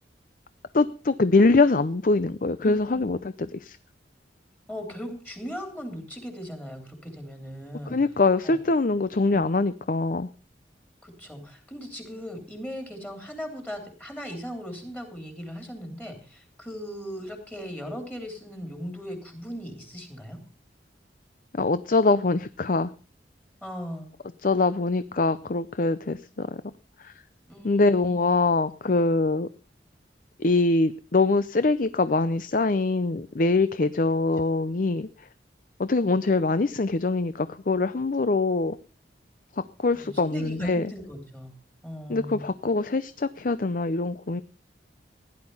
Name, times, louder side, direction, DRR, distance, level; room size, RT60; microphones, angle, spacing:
voice 1, 0.7-3.2 3.6-3.8 7.9-10.3 21.6-22.9 24.4-26.5 27.0-27.1 27.6-29.5 30.4-35.1 35.8-38.8 39.8-40.9 42.1-44.4, left 3 dB, 50° left, 14 dB, 0.6 m, -23 dB
voice 2, 2.6-3.1 4.7-8.0 8.4-8.6 9.3-9.6 11.0-20.4 23.6-24.1 27.5-28.1 39.9-41.5 41.8-42.4, equal, 10° left, 5 dB, 3.2 m, -38 dB
16.0 x 11.0 x 5.5 m, 0.37 s
head